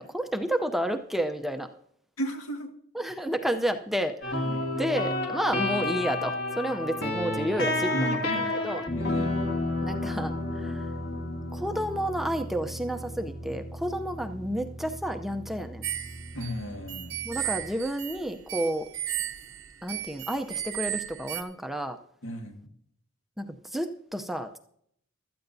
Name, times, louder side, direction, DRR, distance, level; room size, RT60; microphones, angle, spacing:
voice 1, 0.0-1.7 2.9-4.4 4.8-8.8 9.8-10.9 11.5-15.8 17.2-18.9 19.8-22.0 23.4-24.6, equal, ahead, 6 dB, 0.6 m, -31 dB
voice 2, 2.2-2.8 4.4-4.7 7.9-8.5 8.9-9.4 16.3-17.2 22.2-22.7, equal, 75° left, 3 dB, 1.9 m, -34 dB
sound 1, 4.2-17.7, left 2 dB, 50° left, 2.4 m, -32 dB
sound 2, 15.8-21.4, right 12 dB, 65° right, 0.8 m, -35 dB
16.0 x 13.0 x 2.7 m, 0.67 s
head